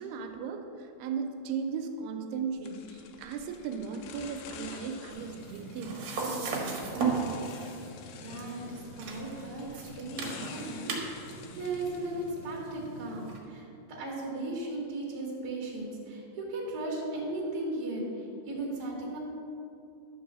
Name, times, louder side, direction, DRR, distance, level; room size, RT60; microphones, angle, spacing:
voice 1, 0.0-6.8, right 6 dB, 85° right, 4 dB, 2.6 m, -37 dB
sound 1, 2.6-12.7, left 6 dB, 80° left, 2.5 m, -49 dB
sound 2, 5.1-13.4, right 4 dB, 55° right, 2.1 m, -37 dB
voice 2, 8.2-19.2, right 2 dB, 35° right, -3 dB, 1.6 m, -37 dB
11.5 x 4.7 x 7.3 m, 2.7 s
omnidirectional pair, 4.7 m